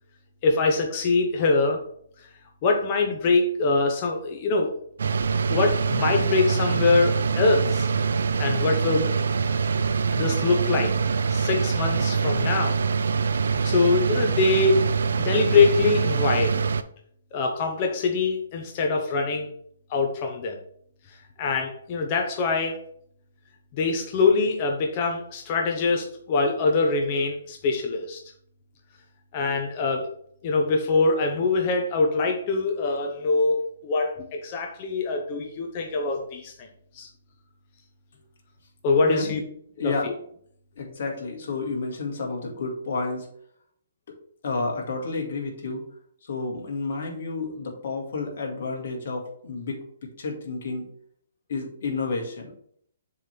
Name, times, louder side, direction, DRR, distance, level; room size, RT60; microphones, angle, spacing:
voice 1, 0.4-1.8 2.6-4.7 5.5-7.9 8.4-9.2 10.2-10.9 11.3-12.8 13.6-14.8 15.2-16.6 17.3-19.5 19.9-20.6 21.4-22.8 23.7-28.2 29.3-30.1 30.4-36.5 36.9-37.1 38.8-39.4 39.8-39.9, left 3 dB, 35° left, 2 dB, 0.9 m, -23 dB
sound 1, 5.0-16.8, right 5 dB, 80° right, 0.5 m, -24 dB
voice 2, 39.0-39.4 39.8-40.1 40.8-43.3 44.4-45.8 46.2-49.8 50.2-50.9 51.5-52.5, left 3 dB, 60° left, 0 dB, 2.1 m, -30 dB
7.1 x 3.5 x 4.4 m, 0.64 s
hypercardioid pair, 150°, 0 cm